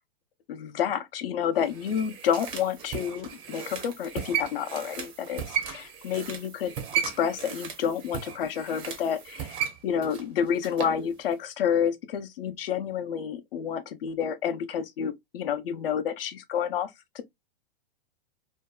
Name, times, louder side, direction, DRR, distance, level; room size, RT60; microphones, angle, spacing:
voice 1, 0.5-6.7 7.0-9.5 9.8-17.2, left 8 dB, 70° left, 0.7 m, -29 dB
sound 1, 1.6-11.0 11.3-11.4, right 8 dB, 20° right, 0.4 m, -35 dB
2.6 x 2.3 x 2.2 m
hypercardioid pair, 140°, 29 cm